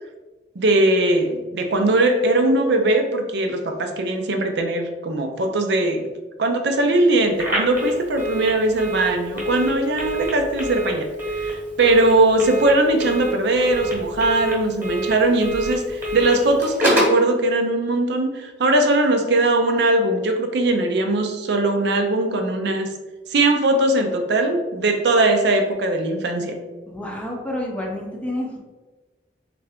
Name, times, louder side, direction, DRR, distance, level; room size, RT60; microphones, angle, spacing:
voice 1, 0.6-6.0 6.4-22.9 23.3-26.6, right 2 dB, 65° right, 5 dB, 0.5 m, -20 dB
Telephone, 7.3-17.2, right 1 dB, 10° right, 1.1 m, -27 dB
voice 2, 26.9-28.6, left 1 dB, 5° left, 0 dB, 0.6 m, -29 dB
3.6 x 3.3 x 3.5 m, 1.2 s
head